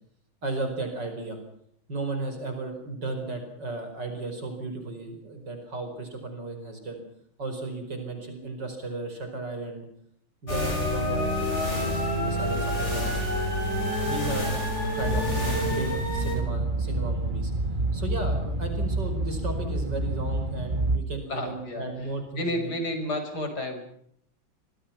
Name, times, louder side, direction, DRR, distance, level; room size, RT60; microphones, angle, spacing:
voice 1, 0.4-1.4 1.9-7.0 7.4-9.9 10.4-13.2 14.1-14.6 14.9-17.5 17.9-22.7, right 2 dB, 55° right, 6 dB, 5.4 m, -35 dB
sound 1, 10.5-16.4, left 1 dB, 30° left, 7.4 m, -28 dB
voice 2, 11.1-11.4 12.8-12.9 21.3-21.9 22.4-23.8, left 1 dB, 50° left, 6 dB, 6.2 m, -31 dB
sound 2, 15.0-21.0, right 2 dB, 25° right, 1.9 m, -28 dB
26.5 x 23.5 x 5.9 m, 0.67 s
omnidirectional pair, 2.2 m